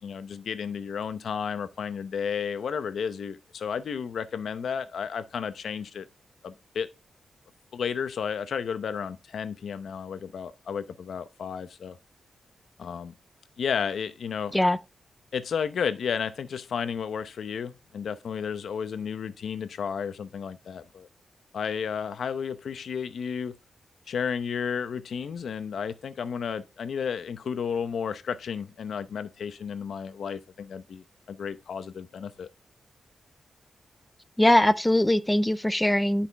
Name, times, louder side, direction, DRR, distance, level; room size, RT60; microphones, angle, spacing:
voice 1, 0.0-6.1 6.4-6.9 7.7-12.0 12.8-13.1 13.6-14.6 15.3-21.1 21.5-23.5 24.1-32.5, left 7 dB, 70° left, 0.8 m, -32 dB
voice 2, 34.4-36.3, left 1 dB, 5° left, 0.4 m, -21 dB
11.0 x 5.7 x 3.4 m
wide cardioid pair, 165°, 0 cm